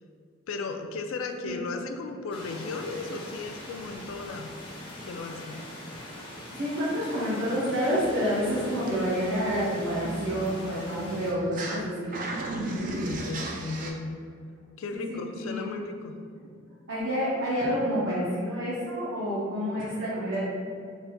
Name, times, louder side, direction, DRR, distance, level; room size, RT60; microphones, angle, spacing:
voice 1, 0.5-4.6 5.0-5.6 12.5-14.2 14.8-16.2, left 3 dB, 75° left, 5 dB, 0.3 m, -35 dB
sound 1, 2.3-11.3, left 1 dB, 25° left, 0.5 m, -42 dB
voice 2, 6.5-12.1 14.9-15.7 16.4-16.5 16.9-20.4, equal, 65° right, -9 dB, 0.7 m, -28 dB
sound 2, 8.0-11.8 12.1-13.9, right 2 dB, 40° right, 0.3 m, -37 dB
3.8 x 3.5 x 2.2 m, 2.3 s
head